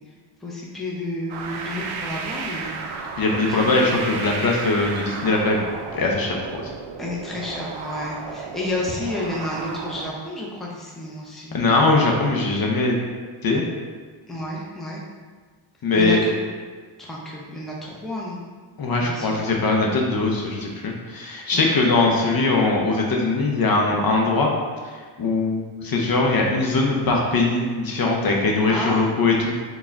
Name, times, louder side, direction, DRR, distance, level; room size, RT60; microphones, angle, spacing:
voice 1, 0.4-2.8 3.3-3.8 7.0-11.7 14.3-15.0 15.9-16.3 17.0-18.4 19.0-19.5 21.5-21.8 28.7-29.1, left 2 dB, ahead, -4 dB, 0.5 m, -31 dB
sound 1, 1.3-10.1, right 4 dB, 70° right, 0.6 m, -33 dB
voice 2, 3.2-6.7 11.5-12.9 13.4-13.6 15.8-16.2 18.8-24.5 24.8-24.9 25.2-29.5, left 3 dB, 45° left, 0 dB, 0.6 m, -21 dB
4.1 x 2.3 x 3.4 m, 1.5 s
cardioid pair, 95°, 50 cm